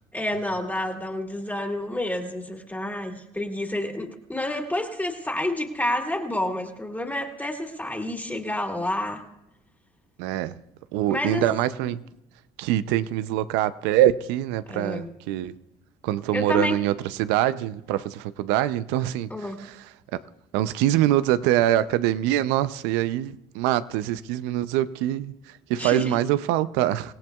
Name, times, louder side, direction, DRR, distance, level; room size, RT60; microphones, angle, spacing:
voice 1, 0.1-9.2 11.1-11.5 11.8-11.9 14.7-15.1 16.3-16.8 19.3-19.6 25.8-26.2, left 1 dB, 10° left, 2.5 m, -29 dB
voice 2, 10.2-10.6 10.9-12.1 12.6-15.5 16.0-19.9 20.1-20.2 20.5-27.1, right 13 dB, 85° right, 0.6 m, -24 dB
26.5 x 17.0 x 2.4 m
supercardioid pair, 70°, 18 cm